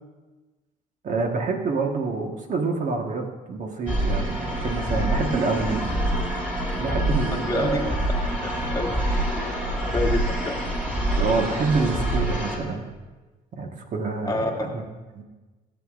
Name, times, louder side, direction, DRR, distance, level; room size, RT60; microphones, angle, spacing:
voice 1, 1.0-5.9 6.8-7.9 11.1-12.8 13.6-14.7 15.1-15.2, right 4 dB, 50° right, 2 dB, 1.4 m, -27 dB
sound 1, 3.9-12.6, right 1 dB, 10° right, 3.3 m, -26 dB
voice 2, 7.4-7.8 8.4-10.6 14.3-14.7, left 2 dB, 20° left, 1 dB, 1.3 m, -29 dB
17.5 x 8.2 x 2.5 m, 1.2 s
cardioid pair, 110°, 17 cm